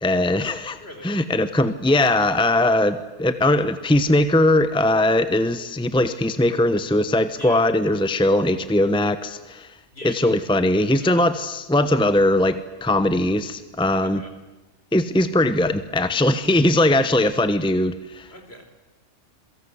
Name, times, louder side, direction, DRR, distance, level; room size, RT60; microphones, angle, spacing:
voice 1, 0.0-9.7 10.0-14.2 14.9-18.3, left 1 dB, 5° left, 11 dB, 1.0 m, -20 dB
voice 2, 0.8-1.2 7.4-7.7 9.9-10.4 11.0-11.3 14.2-14.3 16.8-17.2 18.3-18.7, left 1 dB, 55° left, 5 dB, 5.0 m, -41 dB
28.0 x 23.0 x 8.2 m, 1.1 s
omnidirectional pair, 1.2 m